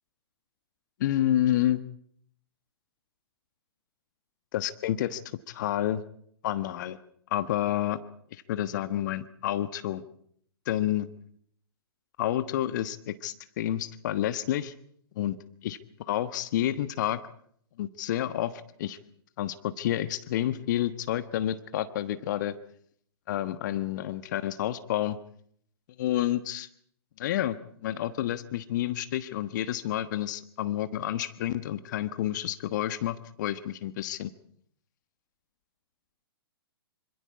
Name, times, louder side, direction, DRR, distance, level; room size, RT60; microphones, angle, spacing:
voice 1, 1.0-1.8 4.5-5.2 5.5-6.0 6.4-7.0 7.3-8.0 8.3-10.0 10.7-11.1 12.2-14.7 15.2-15.4 15.6-15.8 16.1-17.2 17.8-18.5 18.8-19.0 19.4-22.5 23.3-25.2 26.0-26.7 27.2-27.6 27.8-34.3, left 12 dB, 45° left, 12 dB, 1.3 m, -29 dB
26.5 x 26.0 x 4.8 m, 0.64 s
figure-of-eight pair, 115°, 13 cm